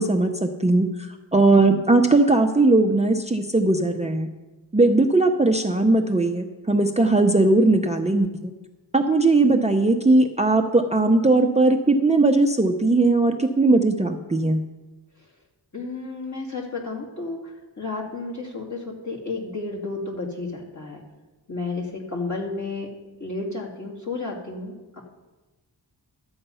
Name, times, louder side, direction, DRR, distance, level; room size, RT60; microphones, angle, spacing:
voice 1, 0.0-4.3 4.7-8.5 8.9-14.6, right 2 dB, 15° right, 5 dB, 0.7 m, -19 dB
voice 2, 15.7-21.0 21.5-22.9 23.2-25.0, left 3 dB, 40° left, -2 dB, 2.7 m, -32 dB
12.5 x 8.0 x 5.6 m, 1.2 s
wide cardioid pair, 70°, 43 cm